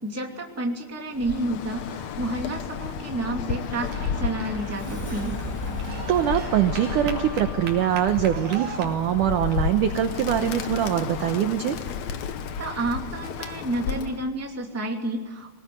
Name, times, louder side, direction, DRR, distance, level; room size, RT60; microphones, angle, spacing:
voice 1, 0.0-5.4 12.6-15.5, right 1 dB, 5° right, 1 dB, 1.7 m, -30 dB
Bird, 1.1-14.3, left 7 dB, 85° left, 1.5 m, -32 dB
Sliding door, 3.8-8.3, right 1 dB, 15° left, 0.7 m, -38 dB
sound 1, 3.8-8.8, right 6 dB, 55° right, 3.8 m, -40 dB
voice 2, 6.1-11.8, right 10 dB, 75° right, 7 dB, 1.9 m, -23 dB
24.5 x 19.5 x 9.6 m, 1.2 s
omnidirectional pair, 4.9 m